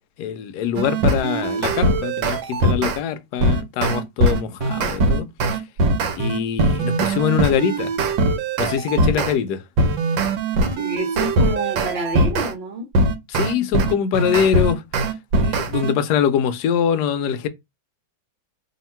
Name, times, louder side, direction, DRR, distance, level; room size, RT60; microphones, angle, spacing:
voice 1, 0.2-5.3 6.1-7.9 8.6-9.6 13.3-14.8 15.4-17.5, left 8 dB, 70° left, 1.0 m, -23 dB
sound 1, 0.8-3.0 3.4-9.3 9.8-12.5 12.9-15.9, right 2 dB, 85° right, 1.4 m, -21 dB
voice 2, 10.8-12.9, right 2 dB, 40° right, 1.1 m, -27 dB
2.9 x 2.8 x 4.3 m
omnidirectional pair, 2.0 m